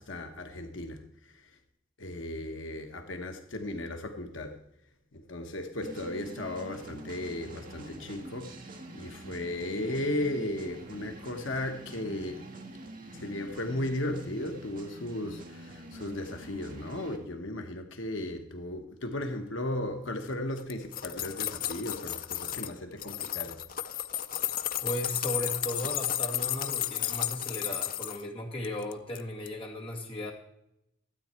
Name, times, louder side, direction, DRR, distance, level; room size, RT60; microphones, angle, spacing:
voice 1, 0.0-1.5 2.0-4.6 5.1-8.6 8.9-12.5 13.1-23.6, left 1 dB, 65° left, 1.2 m, -36 dB
sound 1, 5.8-17.2, right 1 dB, 40° right, 1.5 m, -46 dB
sound 2, 20.6-22.7 23.0-28.2 28.6-29.2 29.5-29.6, left 11 dB, 45° left, 0.5 m, -33 dB
voice 2, 24.8-30.3, left 1 dB, 25° left, 2.0 m, -36 dB
12.5 x 8.5 x 4.4 m
head